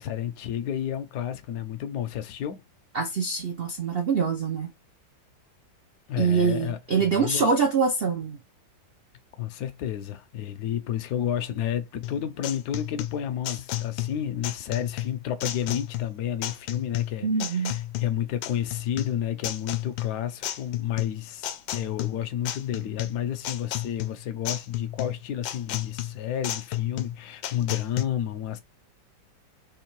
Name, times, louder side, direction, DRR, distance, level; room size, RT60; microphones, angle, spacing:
voice 1, 0.0-2.6 6.1-7.5 9.4-28.6, left 10 dB, 65° left, 1.1 m, -31 dB
voice 2, 2.9-4.7 6.2-8.4 17.2-17.8, right 5 dB, 60° right, 0.6 m, -24 dB
sound 1, 12.0-28.0, left 13 dB, 85° left, 1.4 m, -33 dB
3.6 x 3.1 x 4.5 m
omnidirectional pair, 2.0 m